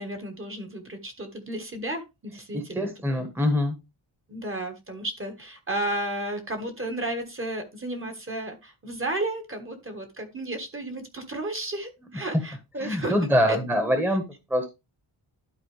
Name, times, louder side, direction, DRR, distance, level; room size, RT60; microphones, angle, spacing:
voice 1, 0.0-3.2 4.3-13.9, right 1 dB, 25° right, 6 dB, 1.4 m, -33 dB
voice 2, 2.5-3.7 12.8-14.2 14.5-14.7, equal, 5° right, 6 dB, 1.1 m, -24 dB
11.5 x 4.4 x 3.2 m, 0.24 s
wide cardioid pair, 165°, 46 cm